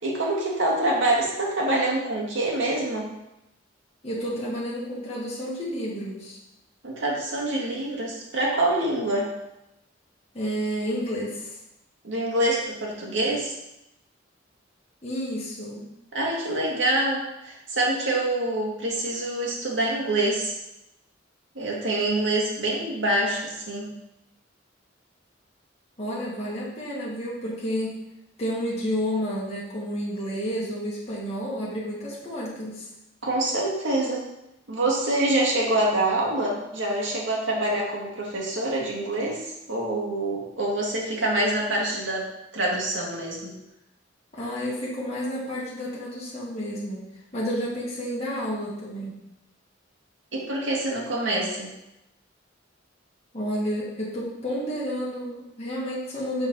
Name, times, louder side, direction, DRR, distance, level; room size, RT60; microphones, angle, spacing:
voice 1, 0.0-3.1 6.8-9.3 12.0-13.5 16.1-20.5 21.6-23.9 33.2-34.2 34.7-42.3 42.5-43.5 50.3-51.7, right 1 dB, 80° right, -3 dB, 1.9 m, -26 dB
voice 2, 4.0-6.4 10.3-11.6 15.0-15.9 26.0-28.0 28.4-32.9 44.3-47.0 47.3-49.2 53.3-56.5, equal, 35° left, -7 dB, 1.7 m, -30 dB
6.0 x 4.4 x 5.4 m, 0.88 s
head